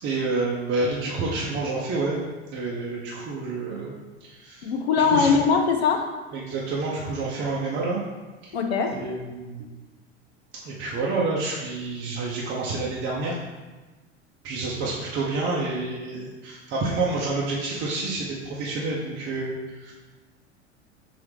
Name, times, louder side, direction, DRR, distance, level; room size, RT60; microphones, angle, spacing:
voice 1, 0.0-2.2 2.5-4.7 5.1-5.4 6.3-8.0 8.4-8.6 8.8-9.6 10.6-13.4 14.4-19.9, right 3 dB, 35° right, -5 dB, 0.7 m, -28 dB
voice 2, 4.6-6.1 8.5-9.0, left 5 dB, 65° left, 4 dB, 0.6 m, -21 dB
5.5 x 2.8 x 3.4 m, 1.2 s
figure-of-eight pair, 80°, 34 cm